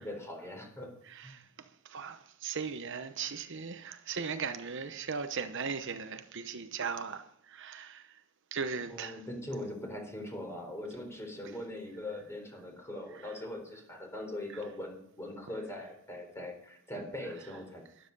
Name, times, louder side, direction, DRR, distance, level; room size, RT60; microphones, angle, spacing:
voice 1, 0.0-0.9 1.2-1.3 8.9-17.8, left 1 dB, 15° left, 4.0 m, -41 dB
voice 2, 1.1-8.2 8.5-9.2 13.2-13.3, right 5 dB, 60° right, 0.9 m, -38 dB
12.5 x 12.0 x 5.4 m
head